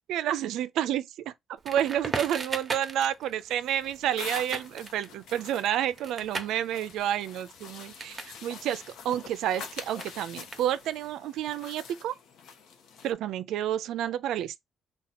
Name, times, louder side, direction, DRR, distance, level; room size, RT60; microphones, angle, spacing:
voice 1, 0.1-1.3 1.7-12.1 13.0-14.6, right 11 dB, 85° right, 0.3 m, -30 dB
Crackle, 1.6-8.4 8.6-11.1, right 4 dB, 35° right, 0.7 m, -39 dB
sound 1, 3.6-13.1, left 6 dB, 85° left, 0.8 m, -46 dB
2.8 x 2.2 x 4.1 m
cardioid pair, 90°, 0 cm